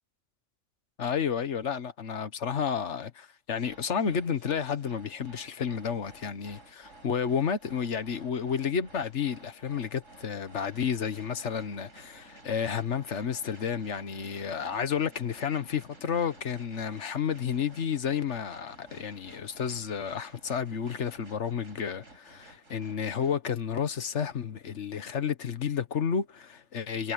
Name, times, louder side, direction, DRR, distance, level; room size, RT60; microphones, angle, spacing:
voice 1, 1.0-27.1, left 7 dB, 70° left, 1.5 m, -31 dB
sound 1, 3.6-23.4, right 2 dB, 80° right, 5.0 m, -54 dB
omnidirectional pair, 1.3 m